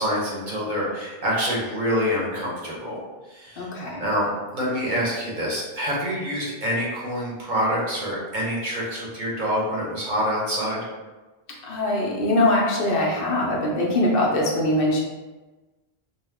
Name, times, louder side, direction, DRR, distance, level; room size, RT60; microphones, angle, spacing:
voice 1, 0.0-3.0 3.3-3.7 4.0-10.8, equal, 50° right, -5 dB, 1.0 m, -26 dB
voice 2, 3.6-4.0 11.6-15.0, left 1 dB, 65° left, -3 dB, 0.8 m, -22 dB
2.9 x 2.1 x 3.4 m, 1.2 s
omnidirectional pair, 1.1 m